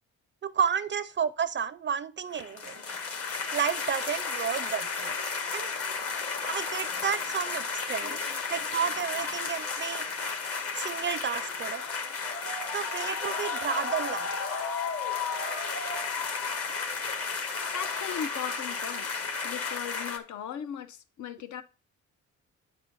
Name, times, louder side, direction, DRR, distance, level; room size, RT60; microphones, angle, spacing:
voice 1, 0.4-2.7 3.5-5.2 5.5-5.7 6.5-8.2 8.5-10.0 10.7-11.8 12.7-14.3, right 7 dB, 40° right, 0.4 m, -31 dB
sound 1, 2.3-20.2, left 4 dB, 50° left, 1.6 m, -33 dB
voice 2, 17.7-19.1 19.4-21.6, left 8 dB, 75° left, 0.9 m, -37 dB
9.5 x 4.3 x 5.4 m
cardioid pair, 140°, 30 cm